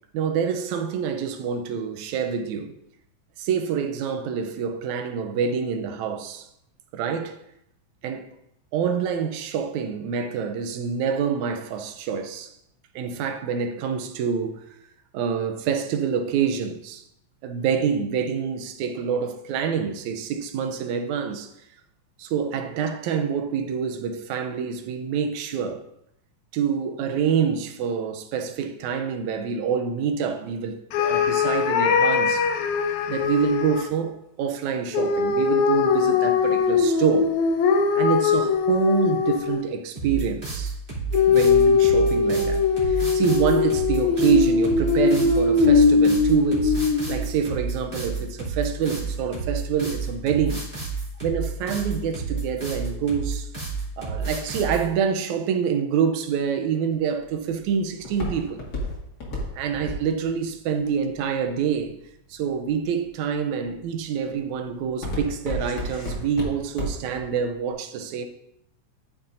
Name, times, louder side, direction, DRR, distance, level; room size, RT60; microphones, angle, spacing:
voice 1, 0.1-2.7 3.4-6.5 6.9-7.4 8.0-8.3 8.7-12.5 13.0-14.6 15.1-17.0 17.4-21.5 22.2-25.8 26.5-32.5 33.1-37.3 38.0-40.8 41.3-46.8 47.1-50.6 51.2-53.5 54.0-58.6 59.5-62.0 62.3-68.3, right 7 dB, 80° right, 2.1 m, -26 dB
sound 1, 30.9-33.9 34.9-39.7 41.1-47.2, left 5 dB, 75° left, 2.0 m, -21 dB
sound 2, 40.0-54.8, right 4 dB, 15° right, 2.9 m, -30 dB
Walk footsteps, 56.9-62.0 62.6-63.1 63.6-64.0 64.3-67.2 67.5-67.6, left 1 dB, 35° left, 2.3 m, -32 dB
13.0 x 7.1 x 2.7 m
omnidirectional pair, 3.4 m